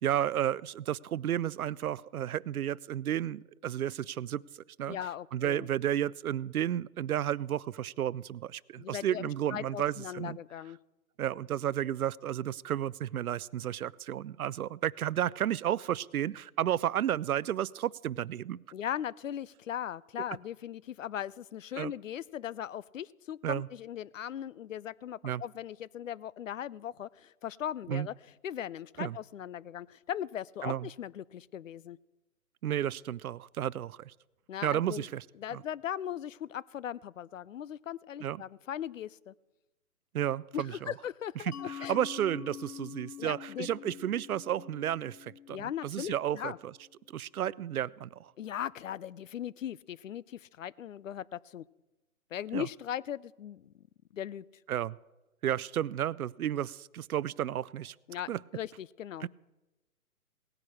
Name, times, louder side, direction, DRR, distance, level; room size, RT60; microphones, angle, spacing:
voice 1, 0.0-4.4 4.8-5.0 5.3-10.4 11.2-18.6 21.8-21.9 23.4-23.7 25.2-25.4 27.9-28.1 29.0-29.2 30.6-30.9 32.6-34.1 34.6-35.2 35.5-35.6 38.2-38.4 40.1-40.9 41.4-46.7 47.1-48.3 52.5-52.7 54.7-55.0 55.4-57.9 58.3-58.4 59.2-59.3, right 11 dB, 75° right, 22 dB, 0.5 m, -32 dB
voice 2, 4.9-5.7 8.8-10.8 18.7-32.0 34.5-35.1 35.4-39.3 40.5-42.0 43.2-43.9 45.5-46.6 48.4-51.6 52.3-53.8 54.1-54.4 58.1-59.3, left 10 dB, 60° left, 23 dB, 0.5 m, -39 dB
Mallet percussion, 41.5-46.9, left 10 dB, 85° left, 0.8 m, -46 dB
18.0 x 9.8 x 6.3 m, 1.1 s
hypercardioid pair, 160°, 44 cm